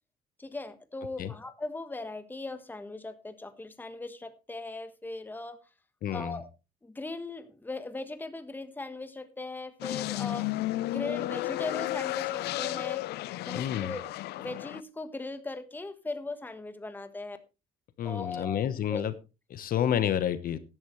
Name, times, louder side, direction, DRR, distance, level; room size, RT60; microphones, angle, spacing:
voice 1, 0.4-5.6 6.1-6.5 6.8-10.5 10.8-13.0 13.4-14.1 14.4-17.4 18.0-19.0, left 2 dB, 10° left, 10 dB, 1.3 m, -39 dB
voice 2, 6.0-6.4 13.5-13.9 18.0-19.1 19.5-20.6, left 10 dB, 60° left, 13 dB, 1.1 m, -29 dB
sound 1, 9.8-14.8, left 17 dB, 75° left, 0.5 m, -33 dB
14.5 x 11.0 x 3.2 m, 0.29 s
cardioid pair, 110°, 17 cm